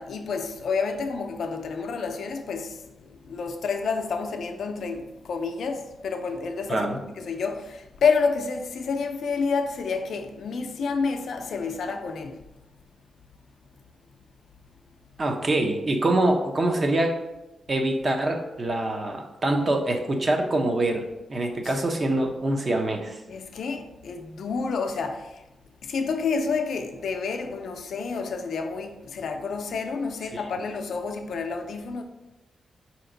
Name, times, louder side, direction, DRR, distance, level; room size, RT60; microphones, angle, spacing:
voice 1, 0.0-12.4 21.6-21.8 23.3-25.4 25.8-32.0, left 5 dB, 80° left, 0.4 m, -29 dB
voice 2, 15.2-17.2 17.7-21.0 21.3-23.2 30.3-30.4, right 2 dB, 35° right, 0.6 m, -24 dB
4.3 x 2.9 x 3.8 m
cardioid pair, 100°, 0 cm